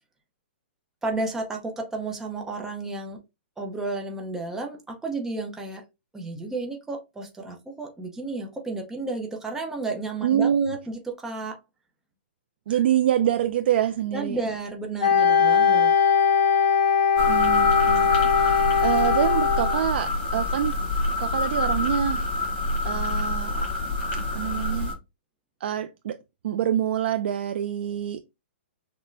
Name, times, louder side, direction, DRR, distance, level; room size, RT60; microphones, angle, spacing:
voice 1, 1.0-3.2 3.6-5.9 6.1-11.6 12.7-12.8 14.1-15.9, right 3 dB, 5° right, 0.7 m, -32 dB
voice 2, 10.2-10.8 12.7-14.4 17.3-18.1 18.4-20.7 21.2-22.3 22.8-23.7 24.1-24.9 25.6-26.2 26.4-28.2, right 10 dB, 65° right, 0.3 m, -26 dB
Wind instrument woodwind instrument, 15.0-19.8, left 7 dB, 65° left, 1.1 m, -20 dB
sound 1, 17.2-24.9, left 2 dB, 40° left, 2.6 m, -26 dB
6.0 x 2.1 x 2.5 m
hypercardioid pair, 145°, 6 cm